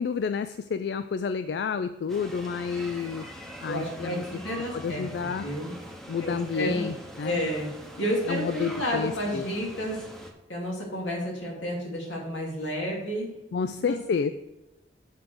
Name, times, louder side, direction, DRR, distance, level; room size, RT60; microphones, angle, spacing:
voice 1, 0.0-3.3 3.6-4.2 4.7-5.4 6.1-7.4 8.3-9.4 13.5-14.3, left 6 dB, 65° left, 11 dB, 0.3 m, -30 dB
sound 1, 2.1-10.3, equal, ahead, 0.8 m, -43 dB
voice 2, 3.7-5.8 6.2-6.9 7.2-7.7 8.0-10.1 10.5-13.3 13.8-14.0, equal, 85° left, -2 dB, 2.7 m, -31 dB
8.2 x 4.9 x 6.1 m, 0.95 s
head